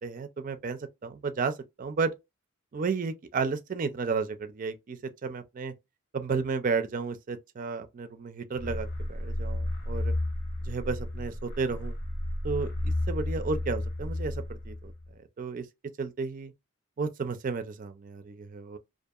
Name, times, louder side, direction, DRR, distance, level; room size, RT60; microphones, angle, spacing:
voice 1, 0.0-2.1 2.7-5.7 6.1-10.1 10.6-12.0 12.4-14.9 15.4-15.7 16.0-16.5 17.0-18.8, right 4 dB, 40° right, 0.4 m, -33 dB
sound 1, 8.5-15.1, left 1 dB, 85° left, 1.1 m, -32 dB
2.7 x 2.5 x 2.3 m
head